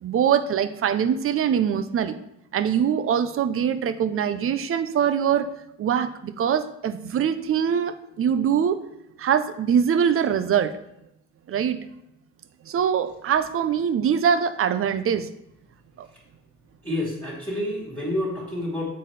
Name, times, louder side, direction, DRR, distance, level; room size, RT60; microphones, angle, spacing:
voice 1, 0.0-2.2 2.5-5.5 5.8-8.8 9.2-10.7 11.5-11.8 12.7-15.3 16.0-16.1, right 8 dB, 45° right, 11 dB, 0.5 m, -23 dB
voice 2, 16.8-18.9, left 1 dB, 5° left, -6 dB, 1.8 m, -28 dB
7.5 x 4.1 x 3.3 m, 0.79 s
cardioid pair, 90°, 30 cm